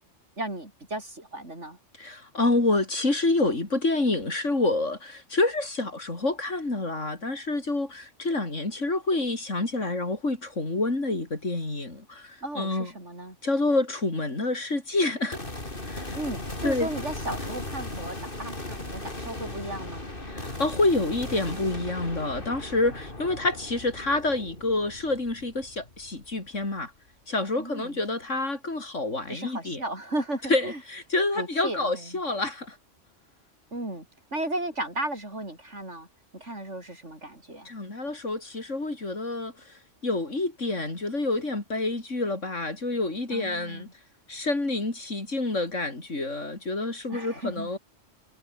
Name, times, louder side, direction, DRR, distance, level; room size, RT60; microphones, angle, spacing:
voice 1, 0.4-1.8 12.4-13.4 16.1-20.1 27.6-28.0 29.3-30.8 31.4-32.2 33.7-34.1 34.3-36.1 36.3-37.7 43.3-43.9 47.1-47.7, right 1 dB, 75° right, 7.5 m, -35 dB
voice 2, 2.0-12.9 13.4-15.4 15.8-16.2 16.6-16.9 20.3-26.9 27.3-29.8 30.5-32.8 37.6-43.9 44.3-47.8, left 2 dB, 85° left, 4.9 m, -28 dB
sound 1, 15.3-26.7, left 2 dB, 45° left, 4.6 m, -37 dB
omnidirectional pair, 1.2 m